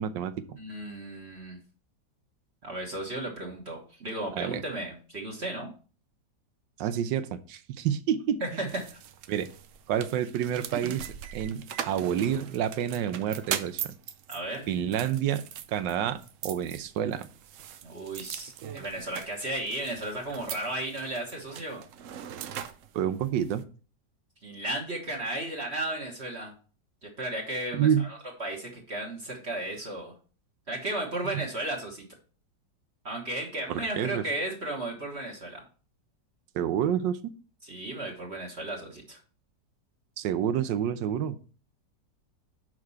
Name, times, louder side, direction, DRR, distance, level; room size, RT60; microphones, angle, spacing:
voice 1, 0.0-0.6 4.4-4.6 6.8-8.4 9.3-9.5 9.9-13.9 14.7-15.4 15.7-17.3 22.9-23.6 27.7-28.1 31.3-31.4 33.7-34.2 36.5-37.3 40.2-41.3, right 9 dB, 85° right, 12 dB, 1.4 m, -28 dB
voice 2, 0.6-1.6 2.6-5.7 8.4-9.0 14.3-14.7 17.8-21.8 24.4-26.5 27.0-30.1 30.7-32.1 33.0-35.6 37.6-39.2, right 1 dB, 40° right, -1 dB, 1.7 m, -34 dB
sound 1, 8.7-23.6, right 9 dB, 70° right, 0.8 m, -41 dB
6.0 x 4.9 x 5.6 m, 0.39 s
omnidirectional pair, 1.9 m